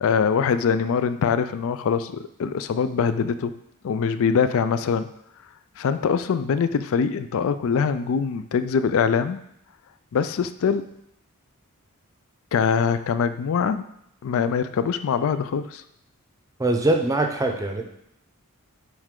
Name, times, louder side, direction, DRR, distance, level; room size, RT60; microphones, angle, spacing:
voice 1, 0.0-3.5 3.8-5.1 5.8-9.4 10.1-10.9 12.5-13.9 14.2-15.8, left 6 dB, 65° left, 12 dB, 0.4 m, -23 dB
voice 2, 16.6-17.8, right 2 dB, 15° right, 3 dB, 0.6 m, -22 dB
9.6 x 3.2 x 3.7 m, 0.78 s
head